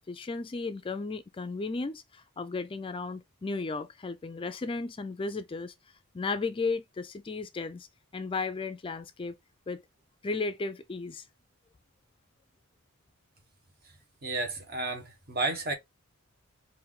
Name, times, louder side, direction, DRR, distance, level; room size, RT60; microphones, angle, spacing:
voice 1, 0.1-5.7 6.1-7.9 8.1-9.4 9.7-9.8 10.2-11.2, left 3 dB, 25° left, 0.4 m, -34 dB
voice 2, 14.2-15.7, right 2 dB, 45° right, 1.3 m, -32 dB
4.5 x 2.6 x 3.6 m
head